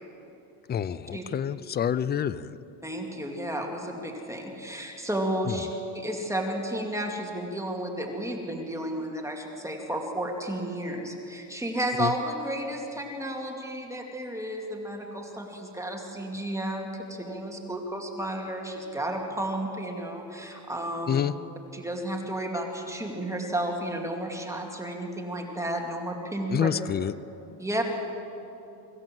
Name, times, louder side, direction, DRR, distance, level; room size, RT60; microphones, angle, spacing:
voice 1, 0.7-2.6 12.0-12.1 21.1-21.3 26.5-27.1, left 8 dB, 25° left, 17 dB, 0.4 m, -27 dB
voice 2, 2.8-5.7 5.9-21.2 21.7-26.7 27.6-27.8, right 1 dB, 5° right, 1 dB, 2.3 m, -32 dB
25.0 x 14.5 x 7.6 m, 2.9 s
cardioid pair, 130°, 46 cm